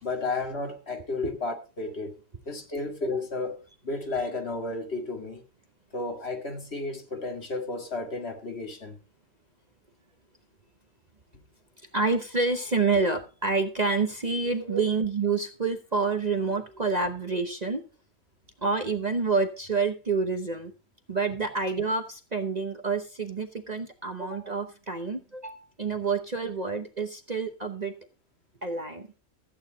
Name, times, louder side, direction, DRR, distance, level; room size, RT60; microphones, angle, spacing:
voice 1, 0.0-2.2 2.5-5.4 5.9-9.0 14.7-14.8, left 3 dB, 50° left, 2.2 m, -33 dB
voice 2, 11.9-17.8 18.6-20.7 21.1-27.9 28.6-29.1, right 4 dB, 35° right, 1.0 m, -28 dB
14.5 x 8.9 x 3.9 m
omnidirectional pair, 1.4 m